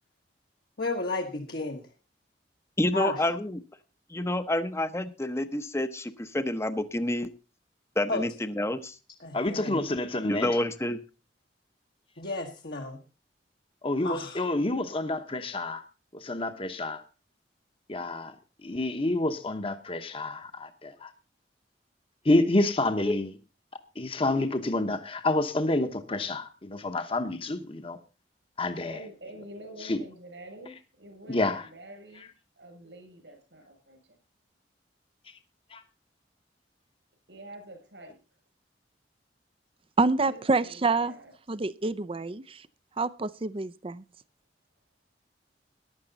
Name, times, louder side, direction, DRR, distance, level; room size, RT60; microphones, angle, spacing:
voice 1, 0.8-1.8 2.9-3.2 8.1-8.3 9.2-9.9 12.2-13.0 14.0-14.5, left 3 dB, 60° left, 1.4 m, -33 dB
voice 2, 2.8-3.6 4.1-7.3 8.0-9.0 10.3-11.0 23.1-23.2, left 1 dB, 15° left, 0.8 m, -28 dB
voice 3, 9.3-10.6 13.8-15.8 16.1-17.0 17.9-18.3 18.6-21.1 22.2-23.4 24.0-28.0 28.6-29.1 29.8-30.0 31.3-31.7 35.7-35.8, left 2 dB, 30° left, 1.1 m, -28 dB
voice 4, 28.9-32.3 32.6-34.2 37.3-38.2 40.2-41.3, right 1 dB, 85° right, 6.8 m, -47 dB
voice 5, 40.0-41.1 41.5-42.6 43.0-44.0, right 3 dB, 30° right, 0.5 m, -27 dB
14.5 x 11.0 x 4.0 m
head